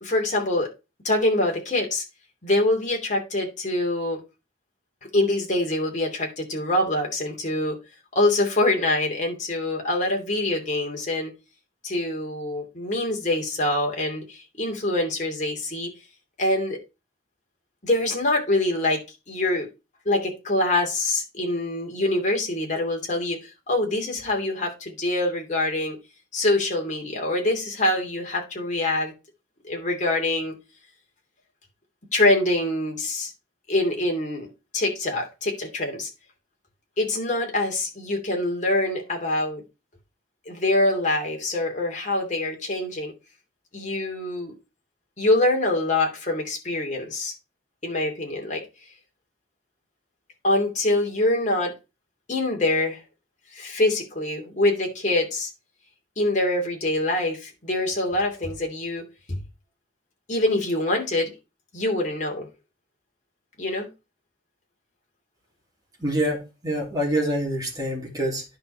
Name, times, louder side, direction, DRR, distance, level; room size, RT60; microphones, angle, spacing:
voice 1, 0.0-0.7 1.0-2.0 2.4-4.2 5.1-7.8 8.1-11.3 11.8-15.9 16.4-16.8 17.8-19.0 19.3-19.7 20.0-26.0 26.3-29.1 29.6-30.5 32.1-33.3 33.7-34.5 34.7-36.1 37.0-39.6 40.5-43.1 43.7-44.5 45.2-47.3 47.8-48.6 50.4-51.7 52.3-53.0 53.5-55.5 56.2-59.4 60.3-61.3 61.7-62.5 63.6-63.9, left 2 dB, 40° left, 2.8 m, -24 dB
voice 2, 66.0-68.4, right 1 dB, 20° right, 3.3 m, -26 dB
10.5 x 5.3 x 4.3 m
head